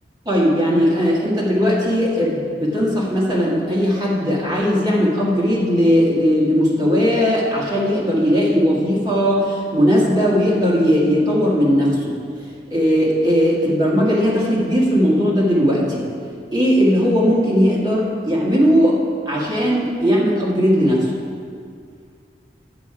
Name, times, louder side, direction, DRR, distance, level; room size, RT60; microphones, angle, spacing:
voice 1, 0.3-12.2 12.7-16.1 16.5-19.0 19.3-21.1, equal, 20° right, -6 dB, 1.8 m, -18 dB
9.5 x 8.2 x 4.8 m, 2.2 s
head